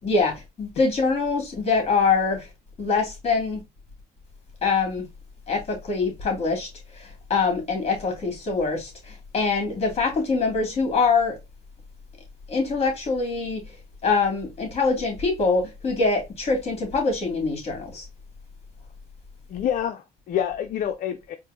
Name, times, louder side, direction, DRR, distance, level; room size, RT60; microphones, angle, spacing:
voice 1, 0.0-2.5 2.8-3.6 4.6-5.0 5.5-11.4 12.5-13.6 14.0-18.1, left 4 dB, 35° left, 2.7 m, -24 dB
voice 2, 19.5-21.4, left 10 dB, 50° left, 0.5 m, -27 dB
4.4 x 2.6 x 3.6 m
cardioid pair, 110°, 17 cm